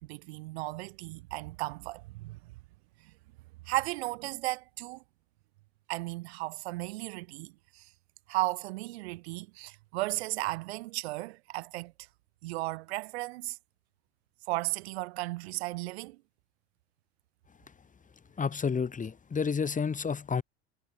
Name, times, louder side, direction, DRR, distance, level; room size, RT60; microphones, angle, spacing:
voice 1, 0.0-2.4 3.0-3.1 3.7-5.0 5.9-7.9 8.3-11.9 12.4-13.6 14.5-16.2, right 21 dB, 65° right, 3.1 m, -35 dB
voice 2, 18.4-20.4, left 6 dB, 20° left, 2.6 m, -30 dB
figure-of-eight pair, 70°, 34 cm